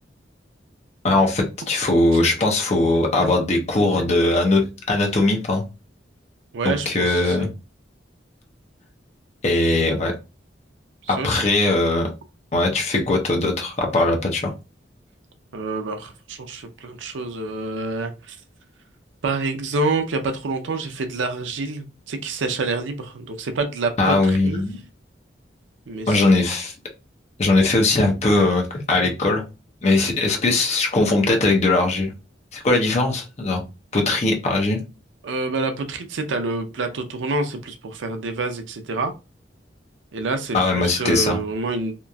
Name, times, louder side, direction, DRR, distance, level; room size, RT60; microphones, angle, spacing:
voice 1, 1.0-5.7 6.6-7.5 9.4-10.1 11.1-12.1 12.5-14.5 24.0-24.8 26.1-26.7 27.4-29.4 29.8-32.1 32.5-33.6 33.9-34.8 40.5-41.4, left 2 dB, 35° left, 2 dB, 0.6 m, -20 dB
voice 2, 6.5-7.5 11.0-11.4 15.5-18.4 19.2-24.6 25.9-26.2 30.0-30.2 35.2-39.1 40.1-42.0, right 3 dB, 80° right, 7 dB, 0.5 m, -27 dB
2.9 x 2.4 x 2.2 m, 0.28 s
head